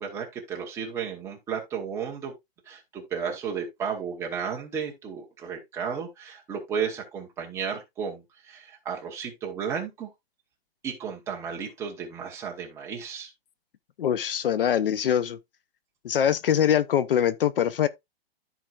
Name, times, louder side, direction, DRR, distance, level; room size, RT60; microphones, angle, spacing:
voice 1, 0.0-2.3 2.7-10.1 10.8-13.3, right 6 dB, 10° right, 0.9 m, -33 dB
voice 2, 14.0-15.4 16.0-17.9, left 9 dB, 60° left, 0.7 m, -23 dB
13.5 x 4.5 x 2.4 m
hypercardioid pair, 170°, 31 cm